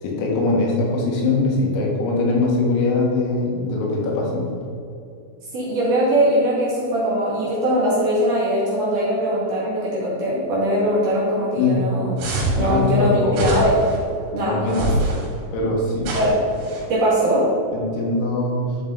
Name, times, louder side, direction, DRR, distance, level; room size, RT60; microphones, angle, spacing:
voice 1, 0.0-4.5 11.6-11.9 12.6-13.6 14.4-15.1 15.5-16.1 17.7-18.7, left 3 dB, 90° left, -2 dB, 4.5 m, -22 dB
voice 2, 5.5-12.1 12.5-13.8 14.3-14.9 16.1-16.4 16.9-17.5, equal, 50° right, -7 dB, 3.0 m, -21 dB
sound 1, 12.2-12.7 13.3-14.0 14.7-15.3 16.0-16.8, right 2 dB, 85° right, 5.0 m, -24 dB
12.0 x 6.7 x 4.0 m, 2.6 s
omnidirectional pair, 5.8 m